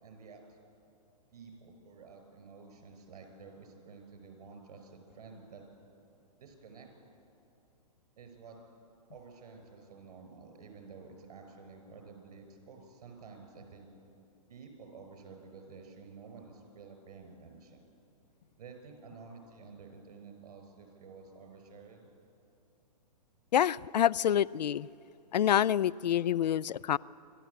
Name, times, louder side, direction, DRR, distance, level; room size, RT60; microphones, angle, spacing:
voice 1, 0.0-0.6 1.3-5.6 6.4-6.9 8.2-8.6 9.1-13.9 14.5-17.8 18.6-22.1, right 5 dB, 65° right, 5 dB, 5.8 m, -51 dB
voice 2, 23.5-24.9 25.3-27.0, left 10 dB, 90° left, 22 dB, 0.4 m, -27 dB
27.5 x 12.5 x 8.2 m, 2.7 s
hypercardioid pair, 145°, 21 cm